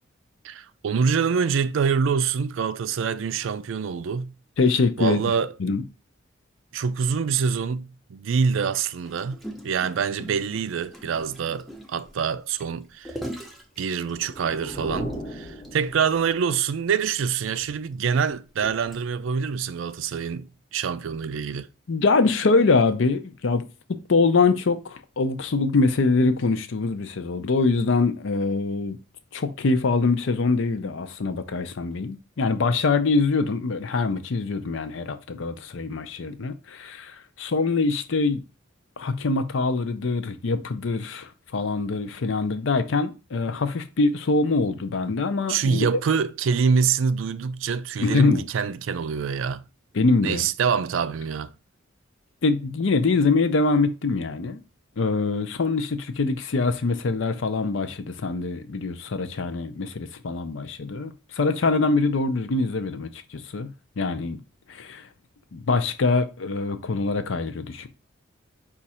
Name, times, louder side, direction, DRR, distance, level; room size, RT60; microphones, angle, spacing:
voice 1, 0.4-4.3 5.0-5.5 6.7-13.1 13.8-21.7 45.5-49.6 50.2-51.5, right 6 dB, 80° right, 0.4 m, -25 dB
voice 2, 4.6-5.3 5.6-5.8 21.9-23.6 24.1-29.0 29.3-38.4 39.0-45.9 48.0-48.4 49.9-50.5 52.4-54.6 55.0-63.7 64.0-64.4 64.7-65.1 65.5-67.9, left 3 dB, 75° left, 0.5 m, -24 dB
Gurgling, 9.0-14.6 15.1-15.2 15.5-15.7 16.0-16.1 16.9-19.4 20.0-20.2, equal, ahead, 0.6 m, -41 dB
sound 1, 13.9-16.5, equal, 30° left, 0.8 m, -37 dB
5.1 x 2.5 x 4.2 m
head